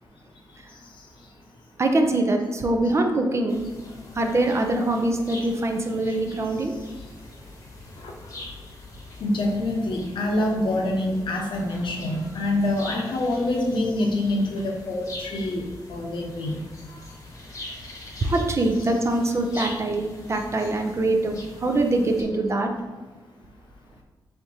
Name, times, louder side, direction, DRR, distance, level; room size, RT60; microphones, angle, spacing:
voice 1, 1.8-3.7 4.1-6.7 18.2-22.7, right 2 dB, 35° right, 3 dB, 0.5 m, -23 dB
sound 1, 3.5-22.2, left 2 dB, 40° left, 1.0 m, -43 dB
voice 2, 9.2-15.6 15.9-16.5, left 1 dB, 70° left, 0 dB, 0.8 m, -25 dB
4.5 x 3.5 x 2.8 m, 1.3 s
wide cardioid pair, 125°, 9 cm